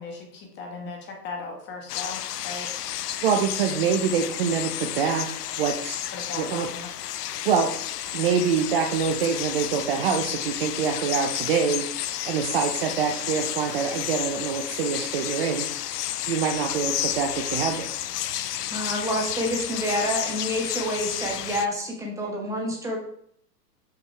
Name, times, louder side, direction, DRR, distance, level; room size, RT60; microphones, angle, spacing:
voice 1, 0.0-3.1 6.1-6.9, left 3 dB, 20° left, 2 dB, 1.2 m, -38 dB
sound 1, 1.9-21.7, left 12 dB, 70° left, 0.5 m, -31 dB
voice 2, 3.2-5.3 5.6-6.0 6.4-6.7 7.4-7.7 8.1-11.9 12.2-15.7 16.3-17.9 22.3-22.4, right 6 dB, 35° right, 4 dB, 0.5 m, -25 dB
voice 3, 18.7-23.0, equal, 5° right, -1 dB, 1.1 m, -28 dB
5.7 x 5.1 x 3.2 m, 0.67 s
hypercardioid pair, 125°, 49 cm